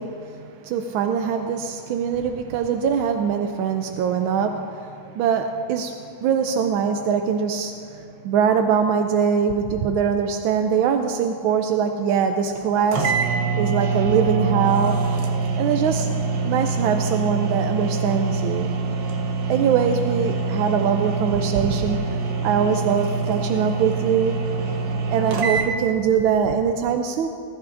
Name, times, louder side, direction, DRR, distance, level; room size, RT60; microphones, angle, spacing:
voice 1, 0.0-5.9 6.2-15.0 15.6-16.1 16.4-18.8 19.5-22.0 22.4-24.4 25.1-27.3, right 7 dB, 85° right, 5 dB, 1.4 m, -22 dB
sound 1, 12.6-12.7 12.9-25.7, right 4 dB, 65° right, 1.6 m, -25 dB
20.0 x 14.0 x 2.6 m, 2.4 s
omnidirectional pair, 2.2 m